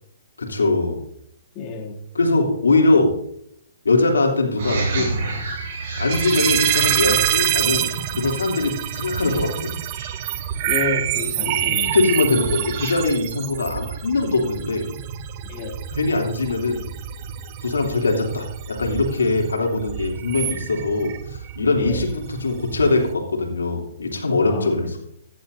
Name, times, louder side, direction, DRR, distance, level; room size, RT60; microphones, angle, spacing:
voice 1, 0.4-1.0 2.1-3.2 3.8-5.2 6.0-7.9 8.1-9.7 11.4-11.6 11.9-14.9 15.9-16.9 17.6-25.0, left 3 dB, 90° left, 1 dB, 2.9 m, -21 dB
voice 2, 1.5-2.0 10.6-12.0 15.4-15.8 21.8-22.1 24.5-24.9, left 4 dB, 30° left, 0 dB, 2.5 m, -30 dB
sound 1, 4.6-12.9, right 3 dB, 55° right, 5.5 m, -31 dB
sound 2, 6.1-23.1, right 11 dB, 35° right, 0.8 m, -27 dB
15.5 x 10.5 x 2.7 m, 0.71 s
hypercardioid pair, 135°, 0 cm